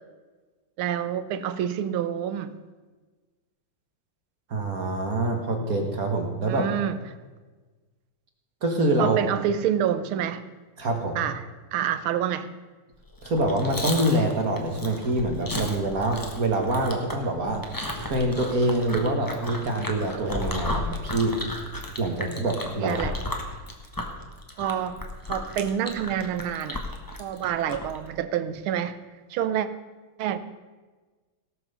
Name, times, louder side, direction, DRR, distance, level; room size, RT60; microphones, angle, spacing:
voice 1, 0.8-2.6 6.5-7.0 9.0-10.5 11.1-11.4 11.7-12.5 22.8-23.2 24.6-26.8 27.2-29.0 29.3-29.7 30.2-30.4, right 9 dB, 75° right, 12 dB, 1.6 m, -27 dB
voice 2, 4.5-6.7 8.6-9.2 10.8-11.2 13.2-17.7 18.0-21.4 22.0-23.0, right 1 dB, 45° right, 3 dB, 1.9 m, -25 dB
Chewing mastication, 13.1-28.0, left 1 dB, 15° left, 1.0 m, -34 dB
17.5 x 6.0 x 6.8 m, 1.3 s
omnidirectional pair, 2.4 m